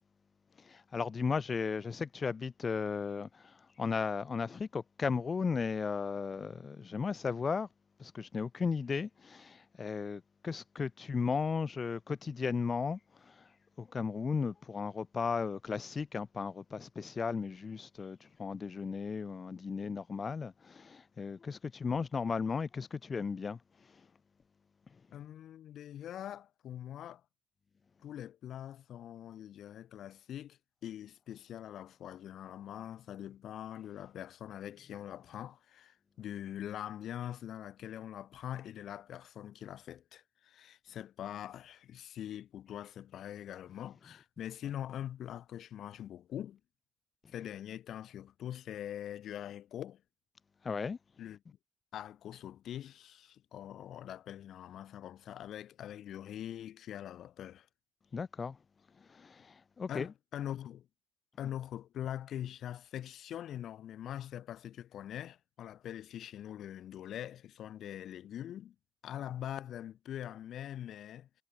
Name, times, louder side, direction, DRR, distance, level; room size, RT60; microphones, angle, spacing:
voice 1, 0.6-7.7 8.0-13.0 13.3-13.5 13.8-23.6 50.6-51.0 58.1-58.6 59.1-60.1, left 5 dB, 35° left, 0.9 m, -35 dB
voice 2, 25.1-27.2 28.0-46.6 47.3-50.0 51.2-51.4 51.9-57.7 59.9-60.9 61.4-68.7 69.0-71.4, left 11 dB, 65° left, 1.0 m, -43 dB
cardioid pair, 85°, 0 cm